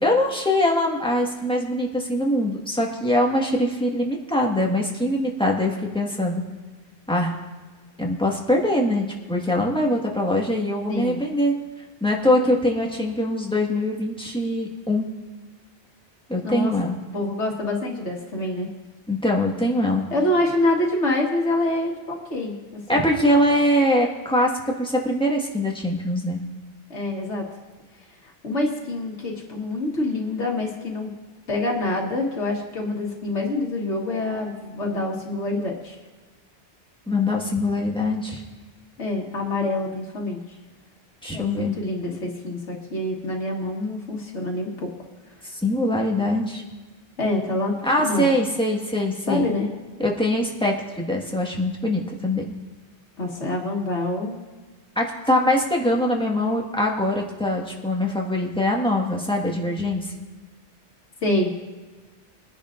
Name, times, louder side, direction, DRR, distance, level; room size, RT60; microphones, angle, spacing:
voice 1, 0.0-6.4 7.1-7.3 8.0-11.5 12.0-15.1 16.3-17.0 19.1-20.0 22.9-26.4 37.1-38.4 41.2-41.8 45.5-46.6 47.8-49.5 50.0-52.4 54.9-60.1, left 1 dB, 5° left, -2 dB, 1.5 m, -23 dB
voice 2, 10.9-11.2 16.4-16.7 17.1-18.7 20.1-22.6 22.9-23.0 26.9-27.5 28.4-31.1 31.5-36.0 39.0-40.4 41.3-44.9 47.2-48.3 49.3-49.7 53.2-54.4 61.2-61.6, left 2 dB, 85° left, -1 dB, 2.0 m, -26 dB
22.5 x 10.0 x 2.6 m, 1.4 s
omnidirectional pair, 1.2 m